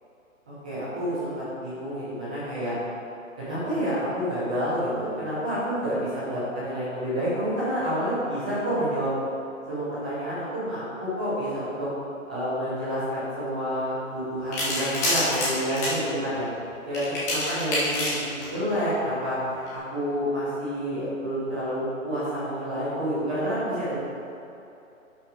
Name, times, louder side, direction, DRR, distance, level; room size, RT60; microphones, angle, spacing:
voice 1, 0.5-1.3 1.6-2.7 3.4-9.1 9.7-11.9 12.3-16.5 16.9-19.4 19.7-24.0, equal, 5° right, -12 dB, 0.7 m, -29 dB
sound 1, 14.5-16.0 16.9-18.6 19.5-19.7, left 1 dB, 10° left, 1.5 m, -27 dB
11.5 x 6.2 x 4.8 m, 2.8 s
hypercardioid pair, 170°, 41 cm